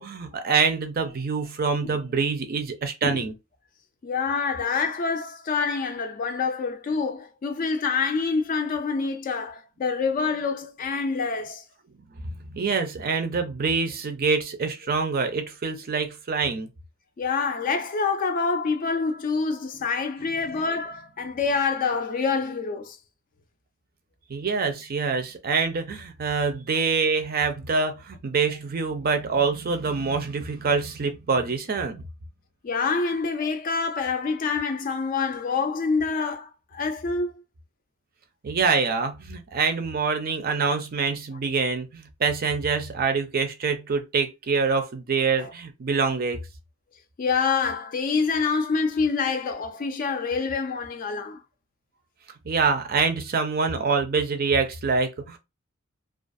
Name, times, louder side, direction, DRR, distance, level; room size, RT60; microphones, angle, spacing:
voice 1, 0.0-3.3 12.5-16.7 20.5-20.6 24.3-32.0 38.4-46.4 52.5-55.4, right 5 dB, 40° right, 0.4 m, -25 dB
voice 2, 4.0-11.6 17.2-23.0 32.6-37.3 45.4-45.5 47.2-51.4, left 4 dB, 40° left, 0.3 m, -26 dB
2.3 x 2.3 x 2.5 m
head